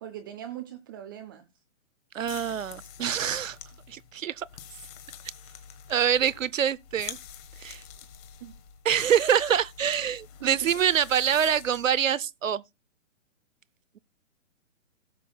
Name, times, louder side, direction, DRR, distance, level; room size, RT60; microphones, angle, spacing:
voice 1, 0.0-1.5 8.4-8.5 10.4-10.6, right 11 dB, 15° right, 0.5 m, -41 dB
voice 2, 2.1-3.6 3.9-4.4 5.9-7.2 7.6-7.8 8.8-12.6, right 9 dB, 75° right, 0.7 m, -25 dB
sound 1, 2.2-12.1, left 9 dB, 30° left, 1.3 m, -46 dB
17.5 x 7.5 x 2.3 m
figure-of-eight pair, 130°, 39 cm